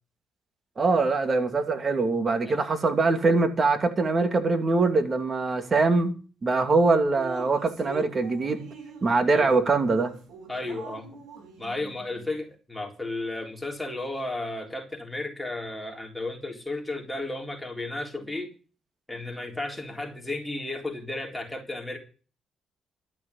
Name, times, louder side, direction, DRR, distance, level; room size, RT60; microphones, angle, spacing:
voice 1, 0.8-6.1 6.4-8.7 9.0-10.1, right 3 dB, 35° right, 2.6 m, -23 dB
Drip, 7.1-12.4, right 5 dB, 80° right, 4.0 m, -43 dB
voice 2, 10.5-11.2 11.6-18.5 19.1-22.0, left 2 dB, 10° left, 3.9 m, -34 dB
13.0 x 6.7 x 8.4 m
cardioid pair, 90°, 0 cm